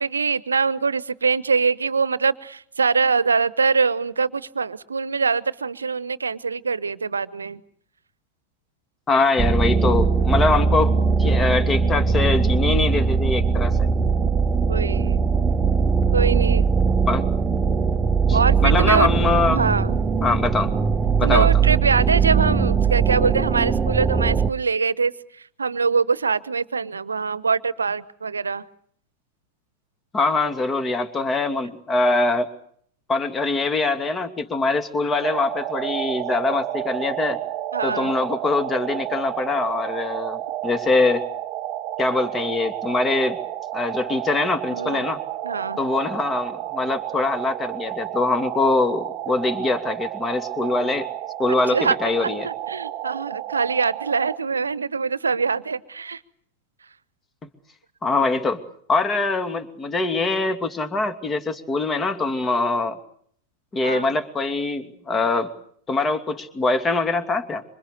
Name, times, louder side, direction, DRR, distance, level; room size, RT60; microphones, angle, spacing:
voice 1, 0.0-7.6 14.7-15.3 16.1-16.7 18.3-19.1 19.5-20.0 21.2-28.6 37.7-38.1 44.7-45.0 45.4-45.8 51.7-56.2 63.8-64.1, right 5 dB, 75° right, 19 dB, 1.0 m, -23 dB
voice 2, 9.1-13.9 17.1-17.2 18.3-19.6 20.2-20.7 21.2-21.5 30.1-32.5 33.1-37.4 37.8-41.2 42.0-43.4 43.7-45.2 45.8-51.1 51.4-52.5 58.0-58.6 58.9-63.0 63.7-65.5 65.9-67.6, left 3 dB, 20° left, 8 dB, 2.7 m, -23 dB
sound 1, 9.4-24.5, right 5 dB, 15° right, 1.1 m, -20 dB
sound 2, 35.2-54.4, right 13 dB, 40° right, 1.3 m, -31 dB
26.5 x 26.0 x 6.8 m, 0.63 s
figure-of-eight pair, 90°, 0 cm